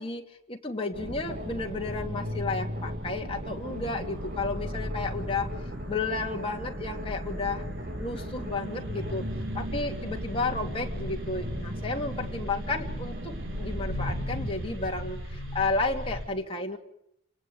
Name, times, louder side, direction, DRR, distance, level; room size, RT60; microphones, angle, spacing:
voice 1, 0.0-5.5 5.9-7.6 8.0-9.3 9.5-16.8, left 3 dB, 30° left, 1 dB, 3.0 m, -32 dB
sound 1, 0.9-14.5, equal, 45° right, 3.1 m, -39 dB
sound 2, 1.3-16.3, equal, 65° right, 5.6 m, -37 dB
29.5 x 18.5 x 8.3 m, 0.78 s
head